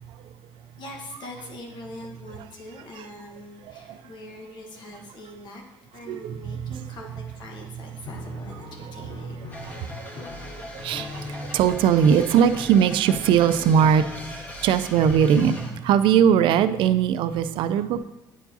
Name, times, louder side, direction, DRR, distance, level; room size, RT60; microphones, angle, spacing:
voice 1, 0.8-5.6 5.9-10.3 14.8-15.1, left 1 dB, 60° left, 1 dB, 1.2 m, -43 dB
voice 2, 6.1-6.8 9.0-9.3 9.6-10.3 10.6-14.1 14.3-18.0, right 8 dB, 70° right, 12 dB, 0.4 m, -21 dB
Piano, 8.1-14.8, left 4 dB, 45° left, 0.4 m, -43 dB
sound 1, 9.5-15.7, left 1 dB, 20° left, 1.3 m, -39 dB
9.0 x 4.5 x 2.7 m, 0.95 s
cardioid pair, 110°, 9 cm